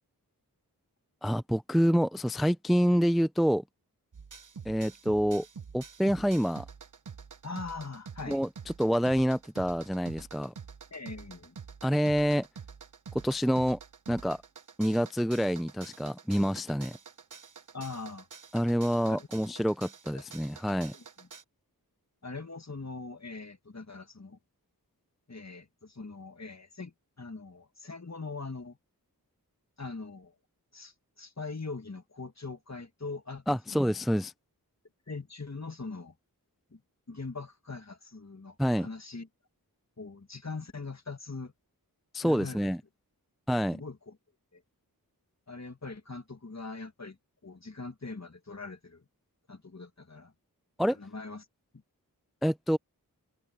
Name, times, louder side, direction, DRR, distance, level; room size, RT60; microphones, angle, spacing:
voice 1, 1.2-3.6 4.7-5.5 5.7-6.6 8.3-8.5 8.8-10.5 11.8-12.5 13.2-13.8 14.1-14.4 14.8-17.0 18.5-20.9 33.5-34.3 38.6-38.9 42.1-42.8 43.5-43.8 50.8-51.0 52.4-52.8, equal, ahead, 0.5 m, -27 dB
sound 1, 4.1-21.4, right 6 dB, 55° right, 0.8 m, -48 dB
voice 2, 7.4-8.4 10.9-11.5 17.7-18.3 19.1-19.3 20.1-20.3 20.9-21.3 22.2-24.4 25.3-28.8 29.8-30.3 30.7-34.0 35.1-36.1 36.7-36.8 37.1-39.3 40.0-41.5 42.2-42.6 43.7-44.2 44.5-44.6 45.5-47.2 47.4-49.0 49.5-50.3 50.9-51.5, left 3 dB, 45° left, 1.8 m, -42 dB
wide cardioid pair, 40°, 38 cm